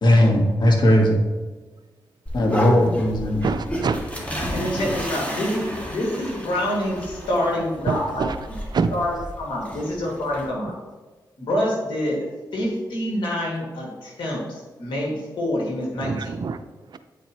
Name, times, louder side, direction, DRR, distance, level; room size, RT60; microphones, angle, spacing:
voice 1, 0.0-1.2 2.3-3.4, left 1 dB, 65° left, 1 dB, 1.5 m, -17 dB
sound 1, 2.3-10.5, equal, 15° left, 1.7 m, -32 dB
voice 2, 3.4-4.0 7.6-8.4 8.7-8.9 10.6-10.7 16.0-17.0, right 5 dB, 60° right, 10 dB, 0.5 m, -27 dB
voice 3, 4.5-8.3 8.9-9.1 9.4-10.8 11.4-12.2 12.5-16.3, left 1 dB, 80° left, -3 dB, 2.1 m, -26 dB
8.9 x 4.6 x 3.0 m, 1.3 s
cardioid pair, 60°, 8 cm